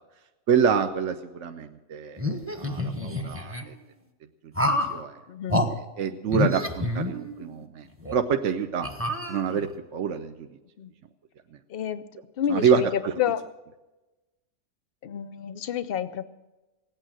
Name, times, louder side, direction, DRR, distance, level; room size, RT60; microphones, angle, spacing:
voice 1, 0.5-3.7 4.6-5.2 5.8-8.9 9.3-10.6 12.5-13.1, right 7 dB, 60° right, 7 dB, 0.9 m, -27 dB
sound 1, 2.2-3.6 4.5-5.0 5.5-5.7 6.3-7.6 8.0-8.2 8.8-9.7, left 1 dB, 10° right, 1.0 m, -28 dB
voice 2, 5.3-5.6 10.8-10.9 11.7-12.1 12.4-13.4 15.0-16.2, left 9 dB, 60° left, 14 dB, 0.6 m, -29 dB
17.5 x 9.0 x 7.5 m, 1.1 s
omnidirectional pair, 1.7 m